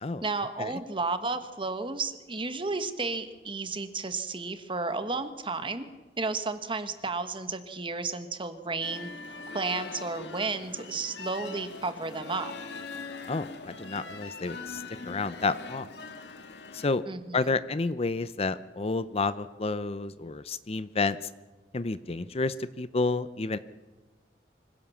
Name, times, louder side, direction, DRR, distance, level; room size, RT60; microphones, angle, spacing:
voice 1, 0.2-5.9 6.2-9.1 9.5-12.5 17.1-17.5, right 3 dB, 30° right, 10 dB, 1.4 m, -32 dB
sound 1, 8.8-16.9, left 3 dB, 75° left, 1.8 m, -42 dB
voice 2, 13.3-15.9 16.7-17.0 17.3-21.2 21.7-23.6, left 3 dB, 35° left, 14 dB, 0.6 m, -30 dB
24.5 x 17.0 x 7.2 m, 1.2 s
head